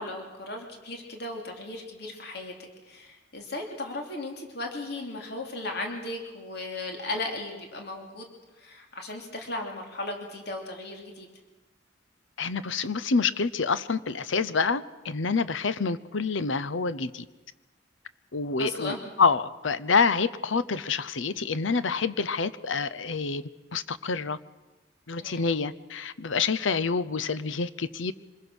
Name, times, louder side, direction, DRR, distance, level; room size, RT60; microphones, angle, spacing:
voice 1, 0.0-8.3 8.6-11.3 18.6-19.1 25.2-25.5, left 2 dB, 60° left, 2 dB, 3.0 m, -36 dB
voice 2, 12.4-17.2 18.3-23.4 23.7-24.4 25.1-28.1, left 4 dB, 85° left, 15 dB, 0.8 m, -27 dB
25.0 x 21.0 x 6.3 m, 1.2 s
head